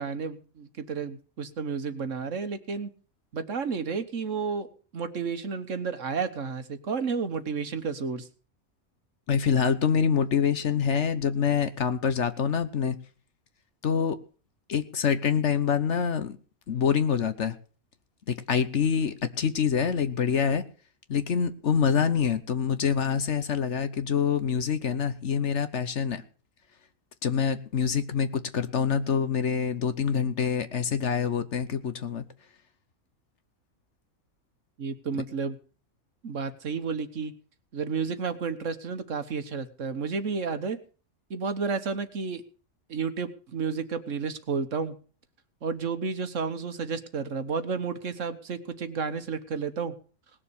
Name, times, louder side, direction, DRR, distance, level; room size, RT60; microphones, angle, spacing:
voice 1, 0.0-2.9 3.3-4.7 4.9-8.3 34.8-35.6 36.2-37.3 37.7-40.8 41.3-42.4 42.9-44.9 45.6-49.9, right 5 dB, 60° right, 9 dB, 1.5 m, -31 dB
voice 2, 9.3-13.0 13.8-14.2 14.7-16.4 16.7-17.6 18.3-20.6 21.1-26.2 27.2-32.3, left 7 dB, 55° left, 12 dB, 1.1 m, -26 dB
19.0 x 6.9 x 6.9 m, 0.39 s
omnidirectional pair, 1.5 m